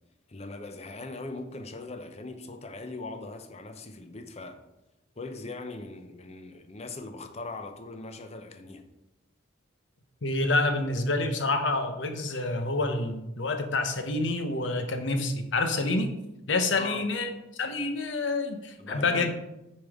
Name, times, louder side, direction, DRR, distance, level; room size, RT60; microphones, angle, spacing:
voice 1, 0.3-4.6 5.2-8.8 16.8-17.1 18.8-19.3, left 3 dB, 35° left, 0.6 m, -40 dB
voice 2, 10.2-16.1 16.5-19.3, left 2 dB, 70° left, 0.9 m, -28 dB
8.6 x 5.3 x 3.6 m
head